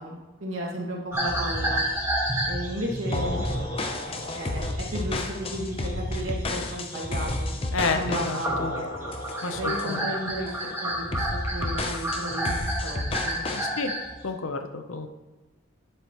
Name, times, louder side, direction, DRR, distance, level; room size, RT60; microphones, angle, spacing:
voice 1, 0.0-1.8 2.4-3.3 4.4-8.9 9.6-13.4, equal, 75° right, -2 dB, 2.1 m, -34 dB
sound 1, 1.1-7.6 7.8-14.1, right 1 dB, 10° right, 2.9 m, -31 dB
voice 2, 3.1-3.4 7.7-8.7 9.4-10.1 13.5-13.9 14.2-15.1, left 3 dB, 80° left, 7 dB, 0.8 m, -31 dB
sound 2, 3.1-10.1 10.5-10.7 11.1-13.7, left 2 dB, 30° left, 0.7 m, -32 dB
10.0 x 8.0 x 3.0 m, 1.2 s
head